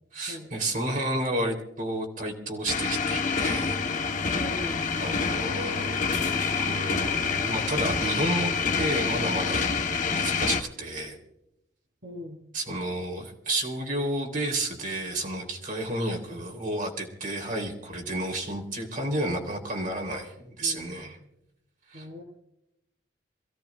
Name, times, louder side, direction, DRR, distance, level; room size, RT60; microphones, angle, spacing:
voice 1, 0.1-3.8 5.0-6.0 6.6-9.7 10.1-11.2 12.5-21.2 21.9-22.0, right 1 dB, 50° right, 2 dB, 3.3 m, -31 dB
sound 1, 2.7-10.6, left 5 dB, 45° left, 1.1 m, -27 dB
voice 2, 4.4-4.9 12.0-12.4 20.6-21.3 21.9-22.2, left 1 dB, 75° right, -2 dB, 4.1 m, -41 dB
27.5 x 16.5 x 2.4 m, 0.84 s
head